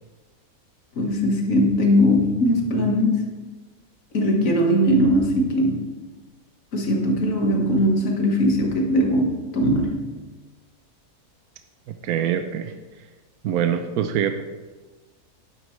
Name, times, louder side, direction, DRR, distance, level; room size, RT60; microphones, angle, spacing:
voice 1, 1.0-3.3 4.1-5.9 6.7-10.0, equal, 60° left, 1 dB, 2.0 m, -20 dB
voice 2, 12.0-12.7 13.4-14.4, right 9 dB, 75° right, 7 dB, 1.1 m, -24 dB
11.5 x 11.0 x 3.3 m, 1.3 s
omnidirectional pair, 1.6 m